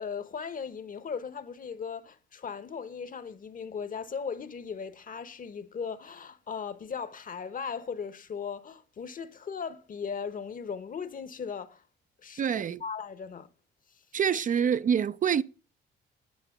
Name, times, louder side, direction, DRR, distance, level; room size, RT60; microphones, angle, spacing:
voice 1, 0.0-11.8 12.2-12.4 12.8-13.5, left 6 dB, 45° left, 0.9 m, -37 dB
voice 2, 12.4-12.8 14.1-15.4, right 8 dB, 40° right, 0.4 m, -26 dB
9.5 x 5.1 x 7.7 m
cardioid pair, 90°, 20 cm